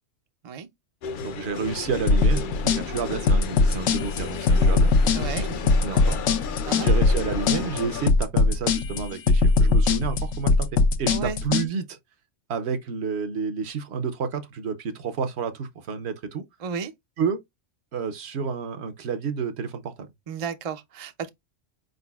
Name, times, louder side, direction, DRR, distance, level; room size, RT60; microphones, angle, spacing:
sound 1, 1.0-8.1, left 5 dB, 55° left, 0.6 m, -34 dB
voice 1, 1.2-6.2 6.8-12.0 12.5-16.4 17.2-17.4 17.9-19.9, right 5 dB, 65° right, 0.9 m, -30 dB
sound 2, 2.1-11.7, left 4 dB, 80° left, 1.0 m, -20 dB
voice 2, 5.2-5.5 6.7-6.9 11.1-11.4 16.6-16.9 20.3-21.3, right 6 dB, 45° right, 0.5 m, -32 dB
4.7 x 3.9 x 2.3 m
omnidirectional pair, 1.2 m